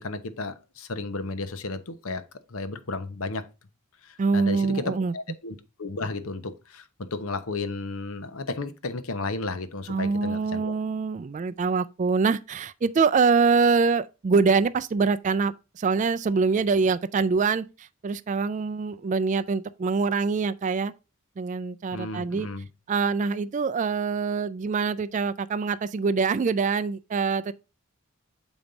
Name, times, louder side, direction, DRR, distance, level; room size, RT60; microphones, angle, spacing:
voice 1, 0.0-3.5 4.0-10.7 21.9-22.7, left 3 dB, 75° left, 0.9 m, -33 dB
voice 2, 4.2-5.1 9.9-20.9 21.4-22.5 22.9-27.5, right 4 dB, 35° right, 0.3 m, -24 dB
7.1 x 5.2 x 3.9 m
head